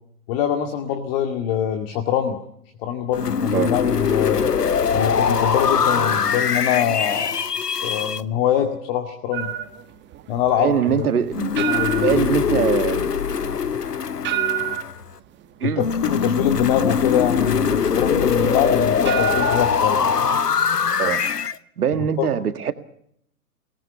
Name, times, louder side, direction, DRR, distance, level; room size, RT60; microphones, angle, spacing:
voice 1, 0.3-2.4 2.8-4.5 4.9-7.3 7.8-9.5 10.3-11.1 11.7-12.7 15.6-20.0 22.0-22.3, left 9 dB, 40° left, 2.3 m, -24 dB
sound 1, 3.1-8.2 11.3-15.1 15.8-21.6, left 6 dB, 90° left, 0.9 m, -22 dB
sound 2, 9.3-20.7, right 13 dB, 25° right, 1.9 m, -31 dB
voice 2, 10.6-11.6 12.0-13.1 15.6-15.9 21.0-21.2 21.8-22.7, right 8 dB, 70° right, 1.9 m, -22 dB
23.0 x 18.5 x 6.9 m
figure-of-eight pair, 110°, 46 cm